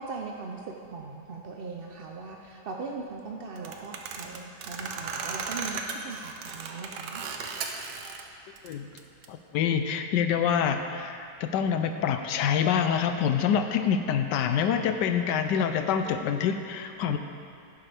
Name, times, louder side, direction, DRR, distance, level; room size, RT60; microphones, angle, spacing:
voice 1, 0.0-7.2, right 4 dB, 65° right, 0 dB, 0.5 m, -39 dB
sound 1, 3.6-8.2 8.5-9.3, right 5 dB, 90° right, 1.4 m, -36 dB
voice 2, 9.3-17.2, left 7 dB, 90° left, 7 dB, 1.2 m, -26 dB
11.5 x 11.0 x 3.4 m, 2.4 s
omnidirectional pair, 1.8 m